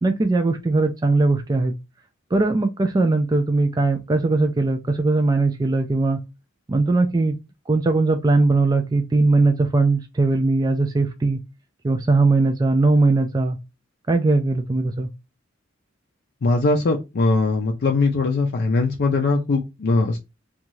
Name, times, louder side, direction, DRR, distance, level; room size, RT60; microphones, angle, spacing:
voice 1, 0.0-1.7 2.3-6.2 6.7-7.4 7.7-11.4 11.8-13.6 14.1-15.1, right 3 dB, 20° right, 0.3 m, -20 dB
voice 2, 16.4-20.2, left 3 dB, 50° left, 0.4 m, -20 dB
2.6 x 2.3 x 3.0 m
head